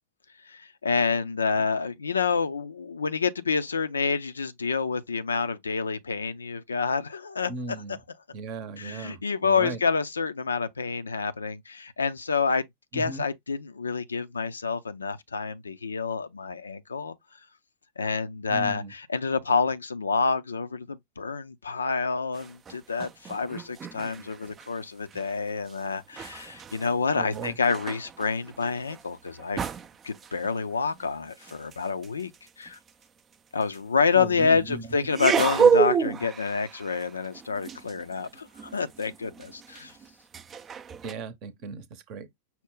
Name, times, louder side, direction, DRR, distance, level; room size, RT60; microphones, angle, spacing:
voice 1, 0.5-7.5 8.8-12.6 12.9-17.1 18.0-29.6 30.0-32.3 32.6-32.8 33.5-39.9, left 5 dB, 75° left, 0.4 m, -28 dB
voice 2, 7.5-8.0 8.3-9.8 12.9-13.3 18.5-18.9 27.1-27.6 34.1-35.0 41.0-42.3, right 4 dB, 40° right, 0.7 m, -37 dB
sound 1, 22.3-24.8 25.1-25.3 25.7-32.9 33.6-33.8 35.1-41.1, right 7 dB, 25° right, 0.4 m, -30 dB
5.7 x 2.1 x 3.7 m
figure-of-eight pair, 90°, 0 cm